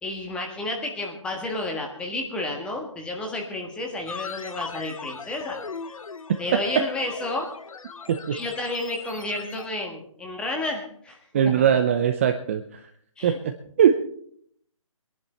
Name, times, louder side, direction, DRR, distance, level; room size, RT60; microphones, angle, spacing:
voice 1, 0.0-5.6 6.4-7.5 8.3-11.6 13.2-13.4, left 2 dB, 5° left, 1 dB, 1.6 m, -31 dB
sound 1, 4.1-9.7, left 5 dB, 75° left, 1.0 m, -39 dB
voice 2, 11.3-12.8 13.2-13.5 13.8-14.0, right 8 dB, 25° right, 6 dB, 0.6 m, -21 dB
22.0 x 11.0 x 4.3 m, 0.64 s
hypercardioid pair, 160°, 18 cm